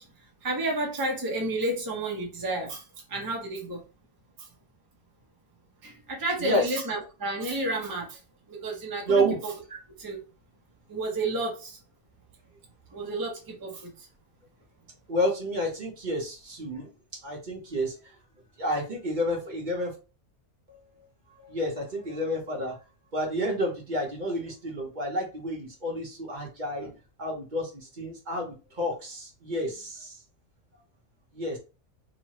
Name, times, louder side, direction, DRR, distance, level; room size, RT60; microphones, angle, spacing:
voice 1, 0.4-2.8 3.1-3.8 4.4-4.5 5.8-8.2 8.5-9.5 10.0-10.2 10.9-11.8 12.9-14.1, right 2 dB, 25° right, -1 dB, 0.5 m, -31 dB
voice 2, 6.4-6.8 9.1-9.4 15.1-16.9 17.2-17.9 18.6-19.9 20.7-20.8 21.4-22.8 23.1-30.2 31.3-31.6, equal, 45° right, 0 dB, 0.9 m, -30 dB
3.1 x 2.0 x 2.8 m, 0.31 s
omnidirectional pair, 1.3 m